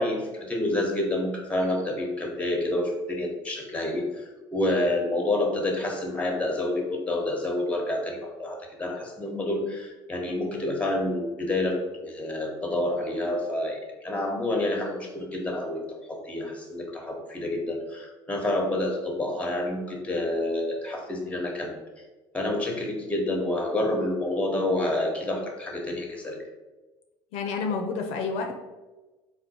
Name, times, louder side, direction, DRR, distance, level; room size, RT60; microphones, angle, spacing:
voice 1, 0.0-21.8 22.3-26.4, left 1 dB, 10° left, 1 dB, 1.0 m, -28 dB
voice 2, 27.3-28.6, left 4 dB, 75° left, 3 dB, 0.5 m, -29 dB
3.5 x 2.3 x 4.2 m, 1.2 s
supercardioid pair, 90°, 11 cm